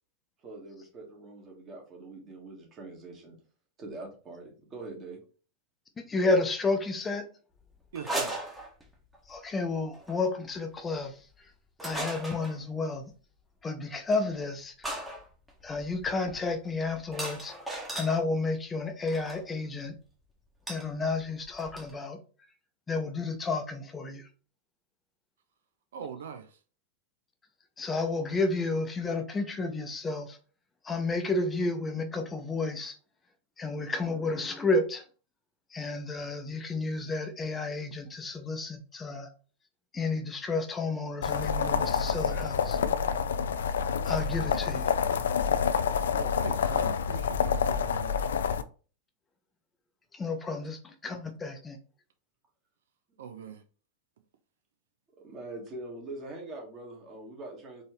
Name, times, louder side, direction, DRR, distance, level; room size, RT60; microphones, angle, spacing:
voice 1, 0.4-3.4 3.8-5.2 53.1-53.2 55.2-57.8, right 2 dB, 30° right, 1.7 m, -43 dB
voice 2, 6.0-7.2 9.3-11.1 11.8-13.1 13.6-15.1 15.6-17.5 17.9-19.9 20.7-22.2 22.9-24.3 27.8-30.4 30.8-32.9 33.6-35.0 35.7-39.3 39.9-42.8 44.0-44.9 50.1-51.8, left 3 dB, 15° left, 0.8 m, -31 dB
voice 3, 7.9-8.4 25.9-26.6 45.6-45.7 46.1-48.3 53.2-53.6, right 7 dB, 60° right, 0.5 m, -42 dB
sound 1, 8.0-9.2 9.9-10.2 11.8-12.6 14.1-14.2 14.8-18.2 19.1-19.4 20.7-20.9 21.2-21.3 21.5-21.9, right 1 dB, 10° right, 1.2 m, -37 dB
sound 2, 41.2-48.6, left 6 dB, 65° left, 0.3 m, -28 dB
4.3 x 3.2 x 3.1 m
figure-of-eight pair, 90°, 0 cm